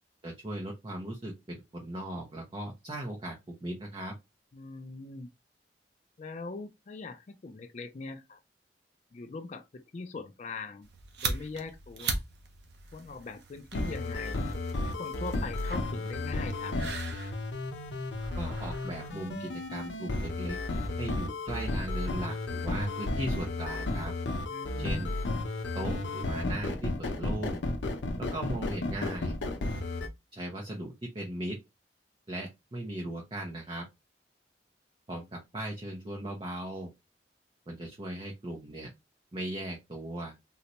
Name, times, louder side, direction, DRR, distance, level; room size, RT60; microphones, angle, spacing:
voice 1, 0.2-4.1 18.4-20.6 21.0-24.1 24.8-25.1 25.7-27.6 28.2-29.3 30.3-31.6 32.3-33.8 35.1-36.9 37.7-38.9 39.3-40.4, right 1 dB, 30° right, 0.6 m, -38 dB
voice 2, 4.5-5.3 6.2-8.4 9.1-10.9 11.2-12.2 12.9-14.4 14.8-16.8 24.5-25.1, left 3 dB, 40° left, 0.4 m, -41 dB
sound 1, 10.8-20.0, right 3 dB, 65° right, 0.7 m, -40 dB
sound 2, 13.7-30.1, left 2 dB, 85° left, 0.6 m, -33 dB
3.9 x 2.1 x 2.9 m
head